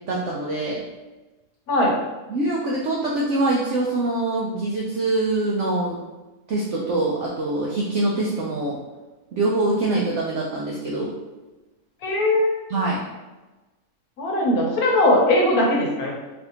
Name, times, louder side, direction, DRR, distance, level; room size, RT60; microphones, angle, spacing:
voice 1, 0.1-0.8 2.3-6.0 6.5-8.8 9.3-11.1 12.7-13.0, right 2 dB, 65° right, -3 dB, 0.7 m, -24 dB
voice 2, 12.0-12.6 14.2-16.2, left 1 dB, 70° left, -2 dB, 1.2 m, -20 dB
4.1 x 2.7 x 2.8 m, 1.1 s
omnidirectional pair, 1.7 m